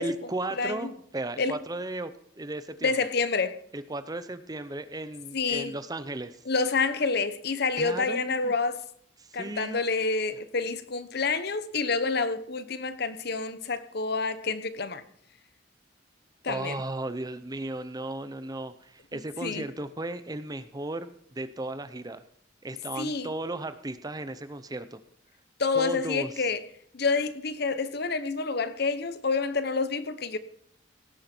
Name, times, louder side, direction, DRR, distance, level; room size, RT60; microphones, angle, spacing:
voice 1, 0.0-3.0 3.7-6.4 7.8-8.5 9.2-9.8 16.4-22.2 22.6-25.0 25.7-26.5, right 2 dB, 20° right, 0.7 m, -35 dB
voice 2, 0.6-0.9 1.4-1.5 2.8-3.6 5.3-5.7 6.5-8.8 9.3-15.0 16.4-16.8 19.4-19.7 23.0-23.3 25.6-26.6 26.9-30.4, left 4 dB, 55° left, 1.0 m, -28 dB
17.5 x 9.3 x 4.5 m
head